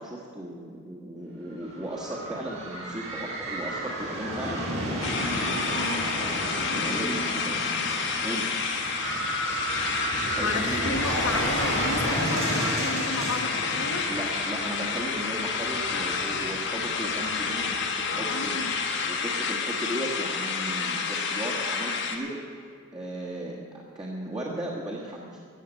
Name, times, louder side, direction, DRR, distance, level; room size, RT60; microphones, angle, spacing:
voice 1, 0.0-4.7 6.7-7.9 8.2-8.6 10.3-11.1 14.1-18.6 19.1-22.4 22.9-25.4, right 1 dB, 20° right, -3 dB, 1.4 m, -36 dB
sound 1, 1.5-19.1, right 1 dB, 80° right, 4.4 m, -33 dB
sound 2, 5.0-22.2, left 5 dB, 55° left, 1.4 m, -29 dB
voice 2, 5.8-6.1 10.4-14.1 18.1-18.8, left 3 dB, 80° left, 5 dB, 1.4 m, -33 dB
14.5 x 7.6 x 9.0 m, 2.1 s
head